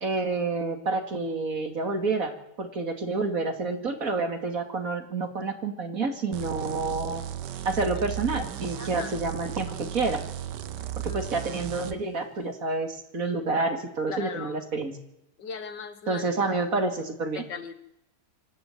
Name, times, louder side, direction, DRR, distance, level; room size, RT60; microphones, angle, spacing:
voice 1, 0.0-7.2 7.6-10.2 11.0-14.9 16.1-17.5, right 3 dB, 55° right, 6 dB, 2.8 m, -29 dB
sound 1, 6.3-12.0, right 11 dB, 90° right, 1.6 m, -35 dB
voice 2, 8.8-9.1 11.0-11.2 14.1-14.6 15.4-16.3 17.3-17.7, left 6 dB, 85° left, 11 dB, 2.2 m, -38 dB
25.5 x 11.0 x 9.1 m, 0.83 s
omnidirectional pair, 1.8 m